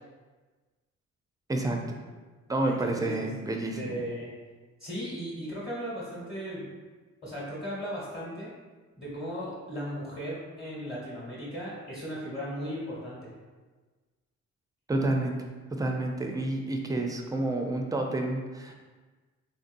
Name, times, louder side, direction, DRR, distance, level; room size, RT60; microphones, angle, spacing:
voice 1, 1.5-2.0 2.5-4.0 14.9-15.3 15.7-18.7, right 2 dB, 10° right, 2 dB, 0.4 m, -29 dB
voice 2, 2.6-3.3 3.7-4.3 4.8-6.7 7.2-8.5 9.0-13.3, equal, 30° left, -7 dB, 1.1 m, -36 dB
3.4 x 2.6 x 2.5 m, 1.3 s
cardioid pair, 90°, 30 cm